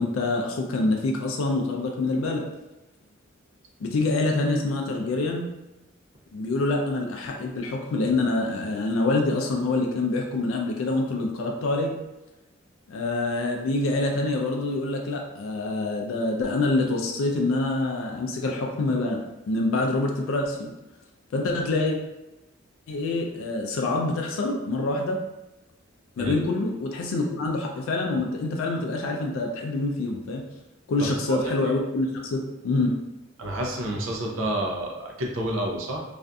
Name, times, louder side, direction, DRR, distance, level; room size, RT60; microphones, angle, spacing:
voice 1, 0.0-2.4 3.8-5.4 6.3-11.9 12.9-19.2 19.5-20.7 21.3-22.0 22.9-25.2 26.2-30.4 30.9-32.9, left 2 dB, 90° left, 1 dB, 0.3 m, -26 dB
voice 2, 31.0-31.5 33.4-36.0, right 1 dB, 85° right, 0 dB, 0.5 m, -29 dB
2.5 x 2.4 x 2.2 m, 1.0 s
head